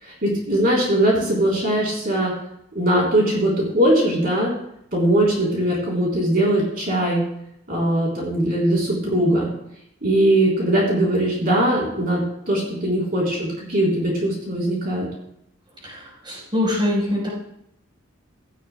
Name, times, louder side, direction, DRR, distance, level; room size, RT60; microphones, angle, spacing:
voice 1, 0.0-2.3 2.7-4.5 4.9-7.2 7.7-9.5 10.0-12.2 12.5-15.1, right 1 dB, 45° right, -4 dB, 3.8 m, -20 dB
voice 2, 15.8-17.3, left 1 dB, 25° right, -4 dB, 4.2 m, -24 dB
16.0 x 12.5 x 2.2 m, 0.76 s
head